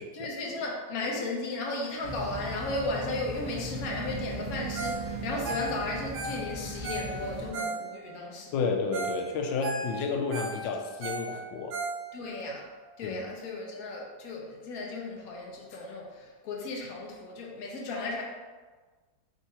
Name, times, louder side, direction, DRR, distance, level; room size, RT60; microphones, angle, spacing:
voice 1, 0.1-8.6 12.1-12.7 13.0-18.2, left 2 dB, 65° left, -1 dB, 0.9 m, -35 dB
sound 1, 2.0-7.5, right 1 dB, 30° right, 0.8 m, -38 dB
Ringtone, 4.7-5.0 5.3-8.2 8.6-8.7 8.9-9.2 9.5-12.4 12.8-12.9, right 3 dB, 90° right, 1.6 m, -36 dB
voice 2, 8.5-11.7 13.0-13.2, left 4 dB, 85° left, 3 dB, 1.3 m, -31 dB
3.6 x 2.6 x 4.1 m, 1.4 s
omnidirectional pair, 2.0 m